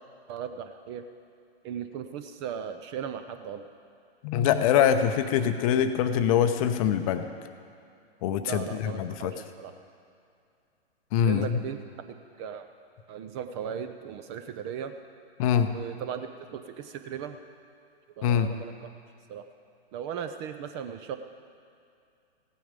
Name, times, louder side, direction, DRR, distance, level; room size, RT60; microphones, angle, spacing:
voice 1, 0.3-1.0 1.6-3.7 8.4-9.7 11.2-11.8 12.1-12.7 13.1-14.9 15.7-17.4 18.2-18.9 19.3-19.4 19.9-21.2, right 8 dB, 25° right, 8 dB, 0.5 m, -37 dB
voice 2, 4.2-7.3 8.2-9.3 11.1-11.6 15.4-15.7 18.2-18.5, left 9 dB, 35° left, 8 dB, 0.7 m, -24 dB
16.0 x 9.2 x 5.2 m, 2.4 s
figure-of-eight pair, 115°, 32 cm